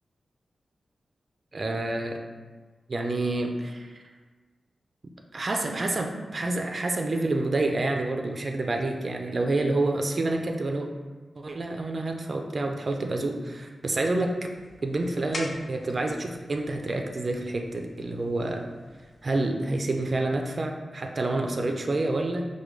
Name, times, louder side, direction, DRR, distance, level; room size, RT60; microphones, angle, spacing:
voice 1, 1.5-2.2 2.9-4.0 5.3-10.9 11.4-14.3 14.8-18.7 19.2-22.5, right 2 dB, 45° right, 3 dB, 0.4 m, -28 dB
sound 1, 14.4-19.4, left 2 dB, 55° left, 0.4 m, -45 dB
4.8 x 2.2 x 3.1 m, 1.3 s
wide cardioid pair, 105°, 0 cm